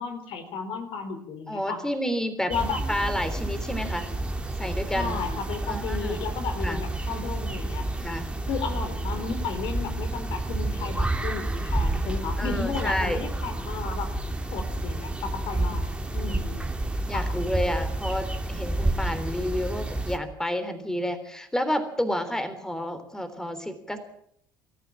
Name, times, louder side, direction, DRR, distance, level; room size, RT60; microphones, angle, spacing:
voice 1, 0.0-1.8 2.5-2.8 4.9-7.9 8.5-14.1 14.5-15.8 16.1-16.6 17.1-17.3, left 5 dB, 55° left, 7 dB, 4.1 m, -33 dB
voice 2, 1.5-2.5 2.9-4.1 4.6-5.2 5.7-6.2 6.6-6.8 8.0-8.4 12.4-13.2 16.2-16.4 17.1-24.0, equal, 5° left, 9 dB, 3.5 m, -30 dB
sound 1, 2.5-20.2, right 2 dB, 10° right, 2.6 m, -30 dB
25.5 x 14.0 x 7.5 m, 0.69 s
hypercardioid pair, 65°, 10 cm